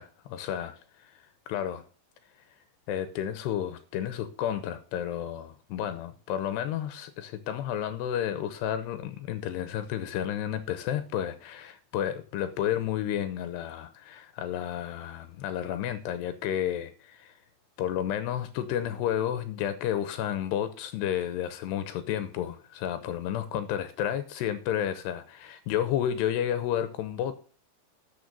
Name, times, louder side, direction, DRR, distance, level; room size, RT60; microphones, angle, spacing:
voice 1, 0.0-1.8 2.9-17.4 17.8-27.3, left 10 dB, 80° left, 3.0 m, -31 dB
13.0 x 6.8 x 5.4 m
omnidirectional pair, 4.8 m